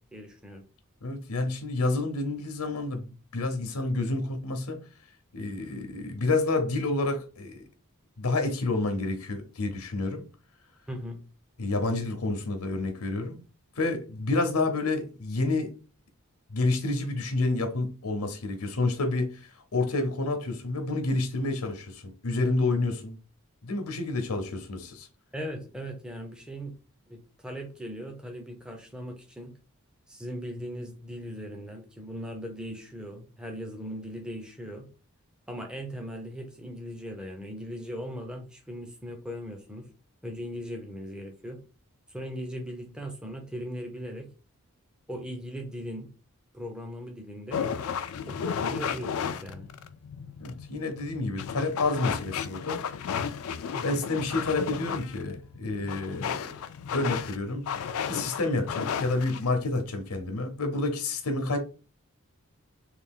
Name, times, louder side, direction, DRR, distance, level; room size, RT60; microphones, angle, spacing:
voice 1, 0.1-0.6 10.9-11.2 25.3-26.7 27.1-29.5 30.1-34.9 35.5-39.8 40.2-41.6 42.1-44.3 45.1-46.1 46.5-47.7 48.3-49.7 53.7-54.0, equal, 5° right, 0.5 m, -39 dB
voice 2, 1.0-4.8 5.3-7.6 8.2-10.2 11.6-13.4 13.8-15.7 16.5-23.2 23.6-25.1 50.4-52.8 53.8-56.5 56.9-57.7 58.1-61.6, left 2 dB, 90° left, 0.8 m, -29 dB
sound 1, 47.5-59.5, left 7 dB, 70° left, 0.3 m, -34 dB
3.3 x 2.4 x 3.6 m
head